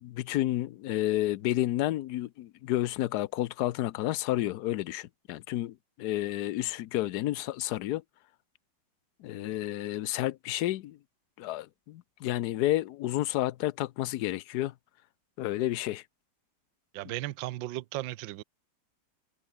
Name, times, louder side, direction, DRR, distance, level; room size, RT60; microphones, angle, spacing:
voice 1, 0.0-8.0 9.2-11.0 11.4-14.7 15.4-16.0, left 15 dB, 65° left, 1.1 m, -30 dB
voice 2, 16.9-18.4, right 16 dB, 75° right, 1.3 m, -36 dB
omnidirectional pair, 2.1 m